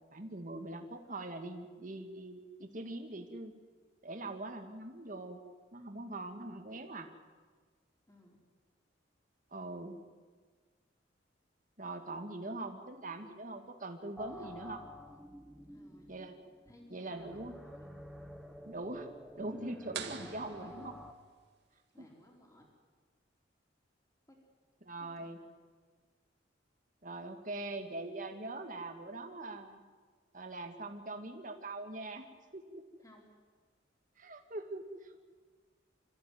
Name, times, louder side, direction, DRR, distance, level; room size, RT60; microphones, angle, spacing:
voice 1, 0.0-3.5 4.0-5.4 5.7-7.1 9.5-10.0 11.8-14.8 16.1-16.4 16.9-17.6 18.7-19.1 19.4-20.9 22.0-22.1 24.8-25.4 27.0-29.8 30.3-32.3 32.5-32.8 34.2-35.2, right 2 dB, 45° right, 5 dB, 2.1 m, -42 dB
voice 2, 8.1-8.4 12.7-12.8 14.3-14.7 15.7-16.1 16.6-17.9 19.4-19.5 20.2-20.9 21.7-22.7 24.3-24.4 25.2-25.5 33.0-33.3, equal, 20° left, -1 dB, 4.1 m, -59 dB
sound 1, 14.2-21.1, equal, ahead, 1.3 m, -51 dB
sound 2, 19.9-21.6, right 6 dB, 65° right, 1.9 m, -45 dB
26.5 x 14.5 x 9.4 m, 1.5 s
head